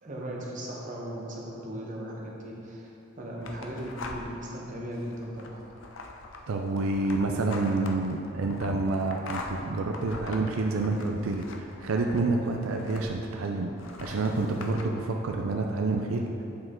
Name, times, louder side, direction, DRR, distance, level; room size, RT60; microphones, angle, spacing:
voice 1, 0.0-2.9 3.2-5.6, right 1 dB, 35° right, -3 dB, 1.0 m, -37 dB
sound 1, 3.4-4.5 4.9-13.3 13.8-14.8, left 3 dB, 65° left, 0.6 m, -43 dB
voice 2, 6.5-13.7 14.0-16.3, right 3 dB, 80° right, 2 dB, 0.5 m, -28 dB
8.4 x 4.9 x 3.7 m, 2.9 s
head